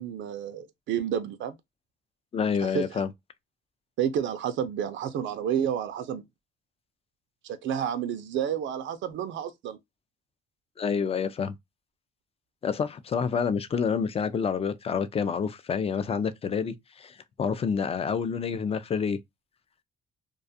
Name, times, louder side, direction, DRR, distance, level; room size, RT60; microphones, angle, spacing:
voice 1, 0.0-1.5 2.6-3.0 4.0-6.2 7.4-9.8, right 9 dB, 75° right, 0.4 m, -30 dB
voice 2, 2.3-3.1 10.8-11.6 12.6-19.2, left 6 dB, 30° left, 0.4 m, -28 dB
2.4 x 2.3 x 2.5 m
cardioid pair, 90°, 20 cm